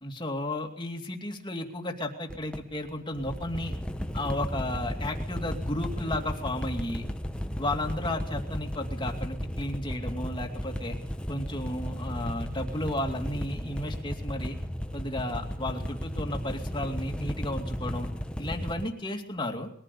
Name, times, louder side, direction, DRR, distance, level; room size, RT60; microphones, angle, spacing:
voice 1, 0.0-3.8 4.1-7.1 7.6-11.0 11.3-14.6 14.9-18.1 18.4-19.7, left 1 dB, 20° left, 4 dB, 2.5 m, -33 dB
sound 1, 2.3-18.9, equal, 5° left, 1.1 m, -34 dB
21.5 x 15.0 x 8.4 m, 0.63 s
head